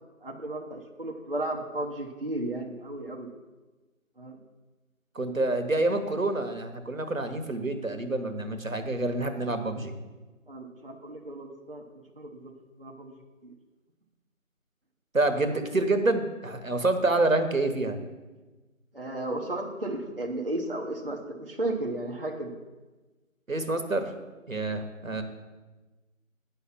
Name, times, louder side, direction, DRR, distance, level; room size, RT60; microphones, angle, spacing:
voice 1, 0.2-3.3 4.2-4.4 10.5-12.5 12.8-13.2 18.9-22.6, right 1 dB, 40° right, 0 dB, 0.8 m, -34 dB
voice 2, 5.1-9.9 15.1-18.0 23.5-24.1 24.5-25.2, right 2 dB, 75° right, 7 dB, 1.2 m, -27 dB
9.6 x 5.7 x 5.9 m, 1.2 s
figure-of-eight pair, 170°, 41 cm